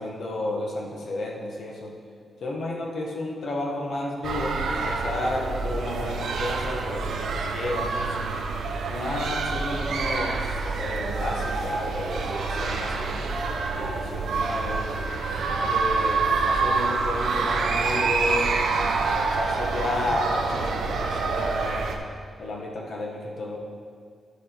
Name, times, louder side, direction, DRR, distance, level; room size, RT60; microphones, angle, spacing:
voice 1, 0.0-2.0 2.4-8.3 8.9-13.3 13.7-14.9 15.6-21.9 22.4-23.6, left 1 dB, 55° left, -1 dB, 1.3 m, -32 dB
sound 1, 4.2-22.0, right 4 dB, 80° right, 0.7 m, -27 dB
sound 2, 10.9-14.1 14.4-18.5 18.8-19.6, right 1 dB, 10° right, 0.7 m, -38 dB
11.0 x 4.8 x 4.5 m, 2.1 s
wide cardioid pair, 165°, 0 cm